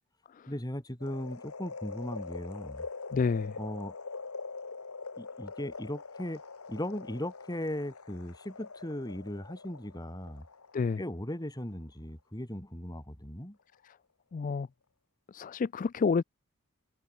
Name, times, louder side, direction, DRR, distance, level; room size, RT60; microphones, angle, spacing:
voice 1, 0.5-2.8 3.6-3.9 5.2-6.4 6.7-10.4 11.0-13.6, left 1 dB, 20° left, 3.1 m, -38 dB
sound 1, 1.0-11.3 11.7-11.8, left 4 dB, 85° left, 1.6 m, -44 dB
voice 2, 3.1-3.6 10.7-11.0 13.8-13.9 14.3-14.7 15.3-16.2, left 5 dB, 40° left, 0.3 m, -29 dB
head